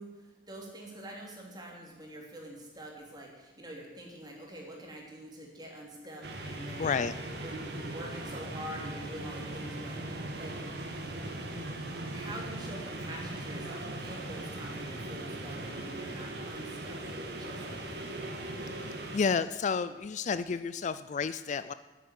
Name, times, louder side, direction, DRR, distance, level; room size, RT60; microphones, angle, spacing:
voice 1, 0.0-7.1 7.4-10.6 12.1-17.0 17.3-17.9, right 1 dB, 25° right, -1 dB, 3.2 m, -46 dB
sound 1, 6.2-19.2, right 1 dB, 60° right, 1.9 m, -39 dB
voice 2, 6.8-7.1 18.7-21.7, left 5 dB, 40° left, 13 dB, 0.4 m, -31 dB
10.0 x 9.5 x 9.7 m, 1.2 s
head